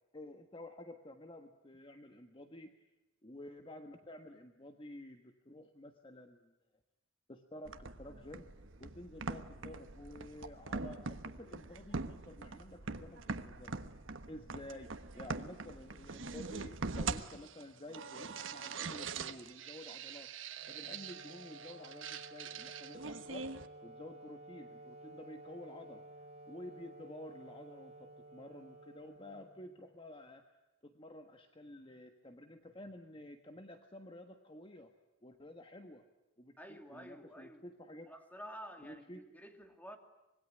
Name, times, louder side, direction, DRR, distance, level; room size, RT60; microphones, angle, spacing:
voice 1, 0.1-2.7 3.2-6.5 7.3-8.5 8.8-13.8 14.3-23.5 23.8-26.0 26.5-30.6 30.8-34.9 35.2-36.0 36.4-38.1 38.8-39.3, left 1 dB, 25° left, 6 dB, 1.5 m, -51 dB
sound 1, 7.6-23.7, right 4 dB, 70° right, 1.3 m, -43 dB
Wind instrument woodwind instrument, 20.6-29.9, right 2 dB, 35° right, 3.4 m, -54 dB
voice 2, 36.6-37.6 38.1-40.0, equal, 10° left, 5 dB, 2.6 m, -50 dB
25.5 x 21.5 x 10.0 m, 0.99 s
head